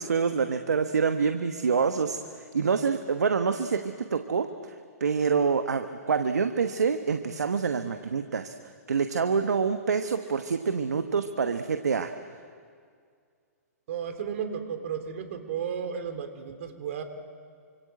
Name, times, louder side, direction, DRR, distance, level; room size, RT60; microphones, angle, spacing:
voice 1, 0.0-8.5 8.9-12.1, right 5 dB, 75° right, 8 dB, 1.2 m, -26 dB
voice 2, 13.9-17.0, right 7 dB, 55° right, 7 dB, 3.4 m, -33 dB
28.5 x 25.5 x 7.8 m, 2.2 s
figure-of-eight pair, 115°, 9 cm